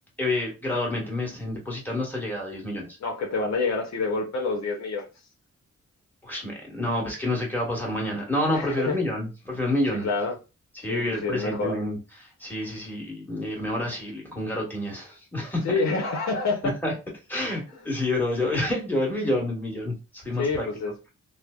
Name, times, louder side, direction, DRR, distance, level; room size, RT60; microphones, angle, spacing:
voice 1, 0.2-2.9 6.2-10.1 10.7-12.0 12.4-15.7 16.6-16.9 17.3-20.7, left 1 dB, 5° left, 1.4 m, -28 dB
voice 2, 3.0-5.1 8.5-9.0 10.0-10.4 10.9-11.8 15.6-16.7 20.3-20.9, left 3 dB, 65° left, 0.7 m, -27 dB
3.0 x 2.0 x 2.3 m
cardioid pair, 65°, 29 cm